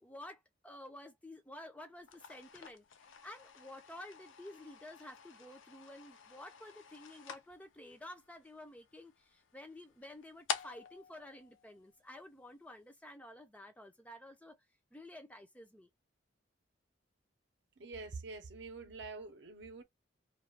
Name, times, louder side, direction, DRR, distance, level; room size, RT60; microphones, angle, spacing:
voice 1, 0.0-14.6 14.9-15.9, left 1 dB, 5° left, 0.4 m, -52 dB
sound 1, 2.0-12.4, left 6 dB, 85° left, 0.5 m, -48 dB
voice 2, 17.8-19.8, right 3 dB, 65° right, 0.7 m, -46 dB
2.3 x 2.3 x 3.2 m
head